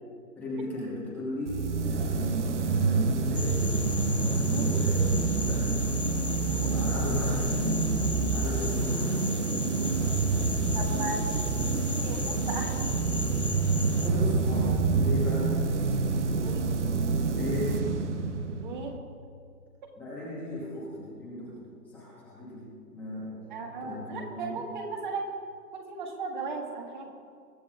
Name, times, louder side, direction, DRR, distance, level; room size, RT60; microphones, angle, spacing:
voice 1, 0.4-3.8 4.1-5.7 6.6-9.3 13.9-14.7 15.0-15.5 17.3-17.8 20.0-23.4 23.8-24.6, left 1 dB, 5° left, -10 dB, 1.1 m, -36 dB
sound 1, 1.5-19.0, right 4 dB, 45° right, 0.9 m, -27 dB
sound 2, 3.3-14.1, left 5 dB, 35° left, 0.5 m, -37 dB
voice 2, 4.5-4.8 6.5-6.8 10.7-11.4 11.9-12.9 16.4-16.7 18.6-18.9 20.4-20.5 23.5-25.3 25.7-27.1, right 4 dB, 30° right, 2 dB, 1.8 m, -36 dB
22.5 x 13.5 x 2.5 m, 2.3 s
figure-of-eight pair, 150°, 48 cm